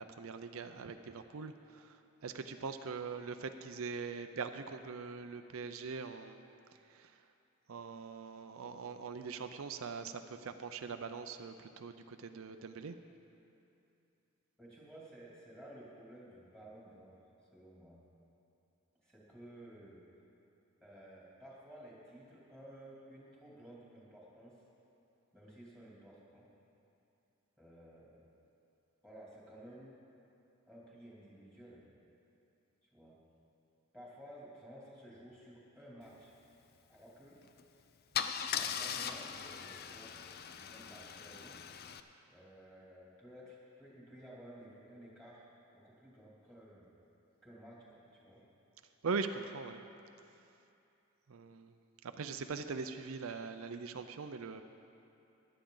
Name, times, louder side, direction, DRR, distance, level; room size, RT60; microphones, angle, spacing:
voice 1, 0.0-6.4 6.9-7.2 7.7-12.9 49.0-49.8 51.3-51.7 52.0-54.6, right 5 dB, 80° right, 8 dB, 0.5 m, -42 dB
voice 2, 14.6-17.2 17.5-18.0 19.0-20.0 20.8-24.6 25.3-26.5 27.6-28.3 29.0-30.0 30.7-31.9 32.8-33.2 33.9-36.3 36.9-37.4 38.4-40.2 40.5-41.6 42.3-45.5 45.7-46.9 47.4-48.4, right 1 dB, 5° left, -6 dB, 2.7 m, -54 dB
Car / Engine starting / Idling, 37.4-37.6 38.1-42.0, left 8 dB, 45° left, 0.4 m, -39 dB
16.0 x 11.0 x 3.9 m, 2.7 s
head